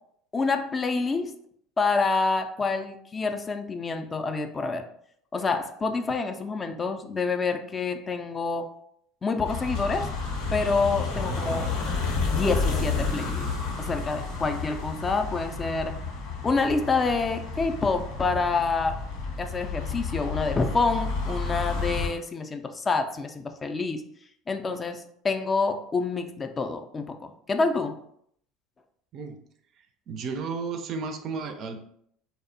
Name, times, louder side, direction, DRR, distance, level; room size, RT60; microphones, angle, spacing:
voice 1, 0.3-1.4 1.8-4.8 5.3-8.7 9.2-10.1 10.5-11.7 12.2-13.5 13.8-16.0 16.4-19.0 19.4-24.0 24.5-28.0, left 4 dB, 30° left, 7 dB, 0.3 m, -27 dB
sound 1, 9.5-22.1, left 4 dB, 75° left, 0.6 m, -31 dB
voice 2, 30.1-31.8, right 5 dB, 50° right, 6 dB, 0.4 m, -33 dB
2.7 x 2.0 x 2.5 m, 0.68 s
hypercardioid pair, 80°, 0 cm